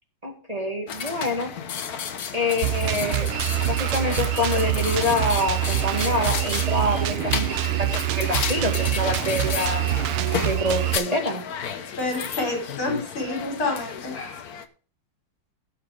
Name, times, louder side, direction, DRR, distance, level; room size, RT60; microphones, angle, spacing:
voice 1, 0.2-1.5 2.3-3.3 3.6-7.5 7.8-9.8 10.4-11.4, left 1 dB, 20° right, 2 dB, 2.0 m, -26 dB
sound 1, 0.9-14.7, left 7 dB, 50° left, 1.3 m, -32 dB
Drum kit, 2.6-11.0, right 14 dB, 90° right, 1.6 m, -25 dB
voice 2, 12.0-14.4, left 2 dB, 80° left, 1 dB, 5.5 m, -28 dB
17.5 x 6.6 x 3.6 m, 0.38 s
omnidirectional pair, 2.3 m